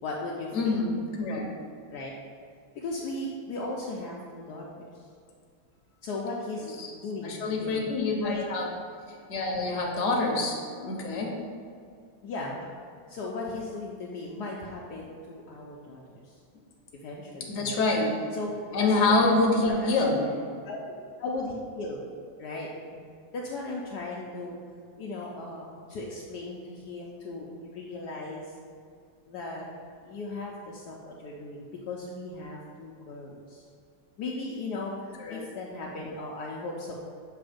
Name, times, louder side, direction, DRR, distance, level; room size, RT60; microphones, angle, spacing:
voice 1, 0.0-0.8 1.9-2.1 2.7-5.0 6.0-6.7 6.9-7.9 8.1-8.4 12.2-12.6 13.1-16.3 17.0-17.9 18.3-18.5 18.8-22.0 22.4-22.7 23.3-24.6 25.0-28.6 29.3-29.7 30.0-33.7 34.2-36.9, left 2 dB, 70° left, -3 dB, 1.1 m, -37 dB
voice 2, 0.5-1.5 6.8-6.9 7.2-8.7 9.3-10.6 10.8-11.3 17.5-18.1 18.7-20.3 35.2-35.4, left 2 dB, 45° left, -1 dB, 1.0 m, -26 dB
6.8 x 3.2 x 5.0 m, 2.2 s
omnidirectional pair, 2.0 m